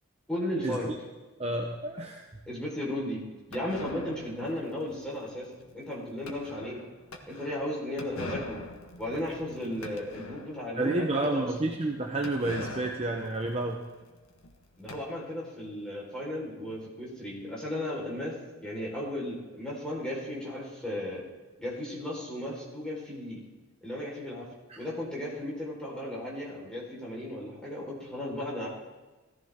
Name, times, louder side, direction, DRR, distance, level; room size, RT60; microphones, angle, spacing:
voice 1, 0.3-0.9 2.5-3.2 3.5-5.5 5.7-6.8 7.3-8.7 9.0-11.5 14.8-18.3 18.6-21.2 21.6-23.4 23.8-24.5 24.8-28.7, left 1 dB, 5° left, -5 dB, 4.5 m, -35 dB
voice 2, 1.4-2.2 10.8-13.8 24.7-24.8, right 2 dB, 30° right, 1 dB, 1.0 m, -30 dB
sound 1, 3.5-10.8 11.2-11.3 11.5-11.6 12.2-15.0, left 2 dB, 85° left, 1.6 m, -44 dB
17.5 x 14.0 x 3.7 m, 1.2 s
head